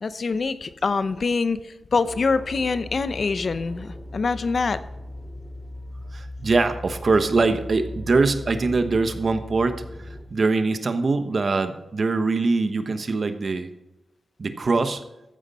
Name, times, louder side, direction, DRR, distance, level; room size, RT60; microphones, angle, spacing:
voice 1, 0.0-4.8, left 4 dB, 55° left, 13 dB, 0.7 m, -25 dB
sound 1, 2.0-10.3, left 1 dB, 5° left, 2.3 m, -38 dB
voice 2, 6.1-13.7 14.4-15.0, right 3 dB, 50° right, 9 dB, 1.1 m, -23 dB
14.0 x 9.6 x 4.2 m, 0.95 s
wide cardioid pair, 90°, 0 cm